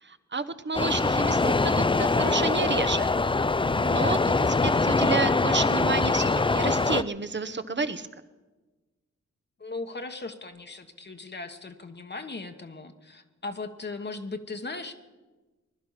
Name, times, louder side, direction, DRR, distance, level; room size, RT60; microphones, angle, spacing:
voice 1, 0.0-3.1 3.8-8.1, right 4 dB, 40° right, 11 dB, 1.0 m, -30 dB
sound 1, 0.7-7.0, left 3 dB, 15° left, 0.5 m, -23 dB
voice 2, 9.6-14.9, left 3 dB, 35° left, 6 dB, 1.2 m, -38 dB
20.5 x 11.5 x 5.7 m, 1.2 s
cardioid pair, 60°, 29 cm